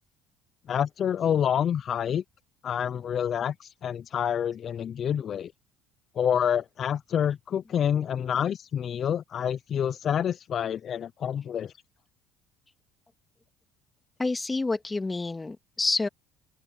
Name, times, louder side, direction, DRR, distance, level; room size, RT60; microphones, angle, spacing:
voice 1, 0.7-2.2 2.6-5.5 6.2-11.7, left 9 dB, 45° left, 0.4 m, -27 dB
voice 2, 14.2-16.1, left 3 dB, 15° left, 2.0 m, -28 dB
open air
cardioid pair, 110°, 0 cm